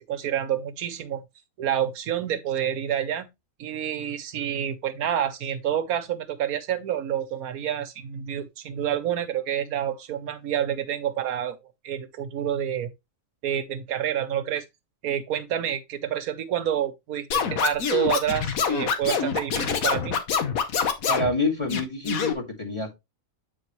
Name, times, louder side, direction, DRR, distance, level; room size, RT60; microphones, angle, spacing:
voice 1, 0.1-1.2 1.6-3.3 3.6-11.6 11.8-12.9 13.4-14.6 15.0-20.2, right 10 dB, 75° right, 1.2 m, -28 dB
Scratching (performance technique), 17.3-21.3 21.7-22.3, left 6 dB, 70° left, 1.4 m, -25 dB
voice 2, 21.1-23.0, left 2 dB, 20° left, 2.0 m, -27 dB
8.4 x 4.4 x 3.0 m
omnidirectional pair, 1.6 m